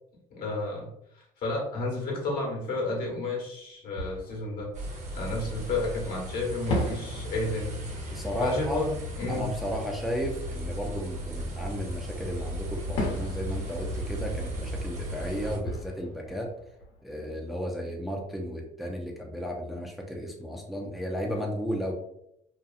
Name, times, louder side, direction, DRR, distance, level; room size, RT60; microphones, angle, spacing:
voice 1, 0.3-0.9 1.1-4.7 5.1-7.7 8.1-9.5, left 2 dB, 65° left, -1 dB, 1.1 m, -31 dB
Fireworks, 3.3-3.4 3.9-5.9 6.7-12.0 13.0-17.7, left 1 dB, 85° left, 1.0 m, -38 dB
sound 1, 4.7-15.6, equal, 45° right, 0.9 m, -36 dB
voice 2, 8.1-8.8 9.3-16.5 17.0-21.9, equal, ahead, 0 dB, 0.5 m, -34 dB
2.7 x 2.4 x 2.4 m, 0.75 s
supercardioid pair, 75°, 17 cm